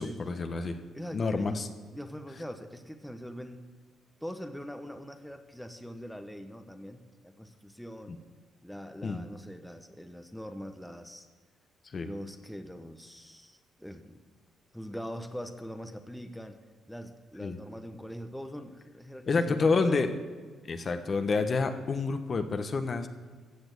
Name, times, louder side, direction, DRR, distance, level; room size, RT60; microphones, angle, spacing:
voice 1, 0.0-0.8 1.1-1.7 9.0-9.2 11.9-12.1 17.4-17.6 19.3-20.1 20.7-23.1, left 4 dB, 40° left, 8 dB, 1.2 m, -28 dB
voice 2, 0.9-1.6 1.9-3.7 4.2-8.1 8.6-11.3 12.0-14.2 14.7-16.6 16.9-20.0, equal, ahead, 6 dB, 1.1 m, -42 dB
15.0 x 7.0 x 8.2 m, 1.5 s
cardioid pair, 90°, 0 cm